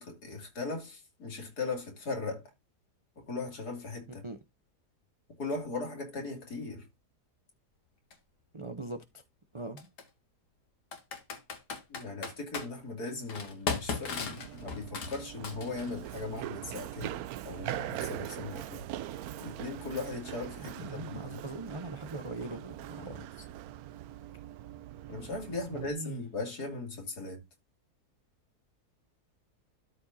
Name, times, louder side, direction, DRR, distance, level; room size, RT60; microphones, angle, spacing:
voice 1, 0.0-2.5 3.2-4.2 5.4-6.9 11.9-17.2 17.4-18.8 19.4-21.4 23.0-23.2 25.1-27.4, left 3 dB, 75° left, 3.3 m, -38 dB
Computer keyboard, 8.1-8.2 9.8-10.0 10.9-12.7 13.3-16.0, left 5 dB, 90° left, 2.1 m, -36 dB
voice 2, 8.5-9.2 9.5-9.9 20.7-23.3 25.7-26.2, right 2 dB, 35° right, 0.4 m, -41 dB
Run, 14.4-25.9, right 12 dB, 70° right, 1.0 m, -42 dB
12.5 x 4.9 x 2.7 m
omnidirectional pair, 1.7 m